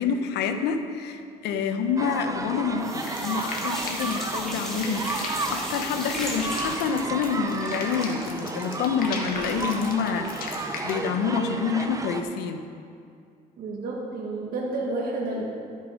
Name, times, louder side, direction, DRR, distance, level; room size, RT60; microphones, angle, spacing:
voice 1, 0.0-12.6, left 6 dB, 85° left, 8 dB, 0.8 m, -28 dB
sound 1, 2.0-12.2, right 3 dB, 20° right, 0.7 m, -33 dB
sound 2, 2.1-2.5 2.8-9.7 10.0-10.1 10.4-10.5, equal, ahead, 2.8 m, -37 dB
sound 3, 3.0-11.0, left 4 dB, 55° left, 1.7 m, -38 dB
voice 2, 13.6-15.4, right 2 dB, 60° right, -3 dB, 1.6 m, -30 dB
13.0 x 6.6 x 5.1 m, 2.4 s
cardioid pair, 110°, 17 cm